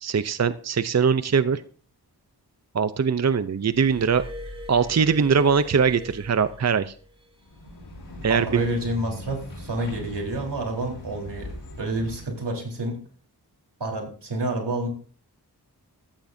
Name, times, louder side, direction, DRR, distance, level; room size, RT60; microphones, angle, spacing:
voice 1, 0.0-1.6 2.7-4.2 4.7-6.9 8.2-8.7, right 6 dB, 40° right, 13 dB, 0.6 m, -21 dB
Glass, 3.7-7.3 8.3-8.5, equal, 15° right, 4.9 m, -41 dB
sound 1, 7.4-12.5, left 1 dB, 70° left, 5.4 m, -40 dB
voice 2, 8.3-11.5 11.8-13.0 13.8-14.9, right 1 dB, 85° right, 0 dB, 4.0 m, -29 dB
14.5 x 14.0 x 2.7 m, 0.42 s
wide cardioid pair, 70°, 40 cm